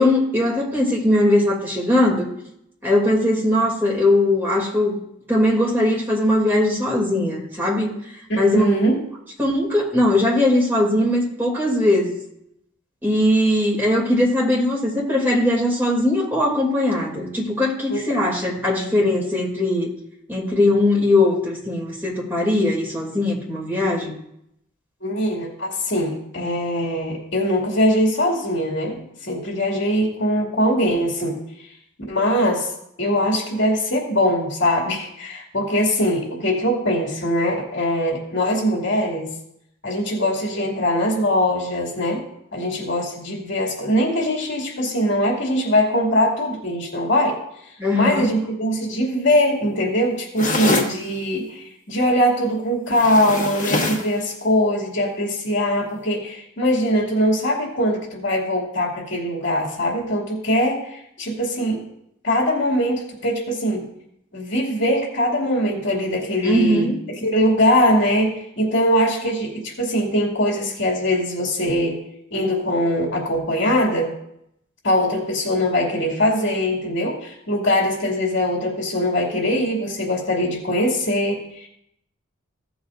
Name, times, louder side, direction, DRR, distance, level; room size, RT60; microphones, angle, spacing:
voice 1, 0.0-2.3 2.8-5.0 5.3-7.9 8.3-8.6 9.4-12.2 13.0-19.9 20.3-24.1 47.8-48.3 66.4-67.0, left 1 dB, 10° right, -4 dB, 2.8 m, -20 dB
voice 2, 8.3-9.0 17.9-18.0 25.0-28.9 29.2-31.4 32.1-32.7 33.0-39.3 39.8-42.2 42.5-47.4 47.9-61.8 62.2-63.9 64.3-66.9 67.2-72.0 72.3-74.1 74.8-81.7, equal, 60° left, -1 dB, 2.5 m, -21 dB
sound 1, 50.4-51.0 52.9-54.1, left 2 dB, 40° left, 1.2 m, -23 dB
16.0 x 7.8 x 2.6 m, 0.75 s
head